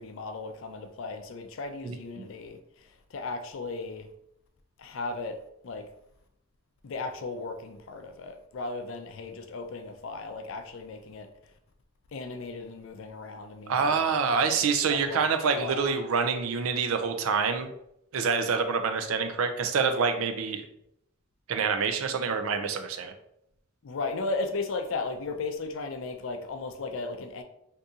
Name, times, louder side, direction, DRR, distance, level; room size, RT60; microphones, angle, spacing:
voice 1, 0.0-2.6 3.1-4.1 4.8-5.4 5.6-5.9 6.8-11.3 12.1-14.1 14.4-14.6 14.9-15.2 15.6-15.8 23.8-27.4, left 3 dB, 70° left, 0.4 m, -36 dB
voice 2, 1.8-2.3 13.7-17.7 18.1-20.6 21.5-23.1, right 5 dB, 85° right, 0.4 m, -27 dB
2.7 x 2.7 x 3.6 m
head